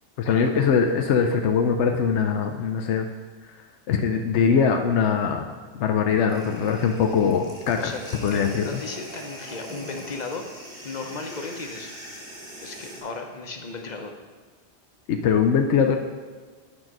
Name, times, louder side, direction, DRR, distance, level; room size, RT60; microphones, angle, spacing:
voice 1, 0.2-3.1 3.9-5.5 5.7-7.9 8.2-8.8 15.1-16.0, left 6 dB, 85° left, 4 dB, 0.9 m, -22 dB
sound 1, 6.3-13.0, equal, 40° right, 2.0 m, -41 dB
voice 2, 8.3-10.4 10.8-11.9 12.6-14.1, left 3 dB, 45° left, 4 dB, 0.9 m, -35 dB
9.7 x 3.8 x 6.0 m, 1.5 s
omnidirectional pair, 1.1 m